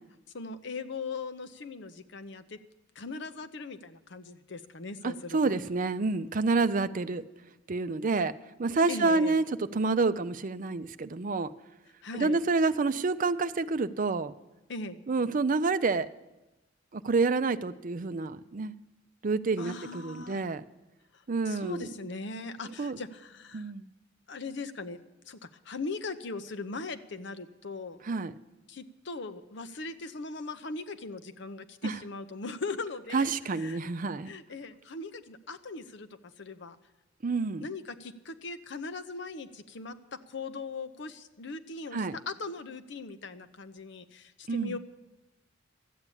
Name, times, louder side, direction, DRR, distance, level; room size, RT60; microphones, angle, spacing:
voice 1, 0.3-2.6 3.0-5.6 8.9-9.4 12.0-12.4 14.7-15.0 19.6-20.4 21.1-23.7 24.3-28.0 28.7-33.8 34.2-36.1 36.4-36.8 37.6-44.8, left 3 dB, 65° left, 10 dB, 0.8 m, -40 dB
voice 2, 5.0-7.2 7.7-8.3 8.6-11.5 12.1-14.3 15.1-16.1 16.9-18.7 19.2-20.6 21.3-21.9 22.8-23.0 23.5-23.9 28.0-28.3 31.8-32.0 33.1-34.3 37.2-37.7 41.9-42.2 44.5-44.8, right 3 dB, 45° right, 12 dB, 0.5 m, -28 dB
13.0 x 8.4 x 9.8 m, 1.0 s
head